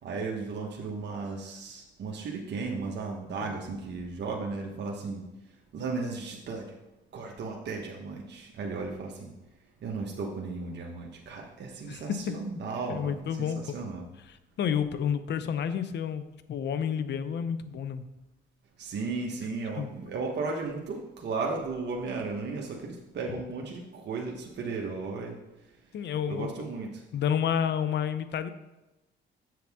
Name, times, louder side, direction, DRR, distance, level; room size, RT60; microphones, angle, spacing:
voice 1, 0.0-5.3 5.7-6.8 7.1-9.3 9.8-14.0 18.8-25.7 26.3-27.0, right 4 dB, 60° right, 0 dB, 1.1 m, -35 dB
voice 2, 11.9-12.3 12.9-13.8 14.3-18.1 19.8-19.9 23.3-23.4 25.9-26.5 27.1-28.5, left 8 dB, 60° left, 12 dB, 0.6 m, -30 dB
7.7 x 7.0 x 3.5 m, 0.96 s
cardioid pair, 90°, 20 cm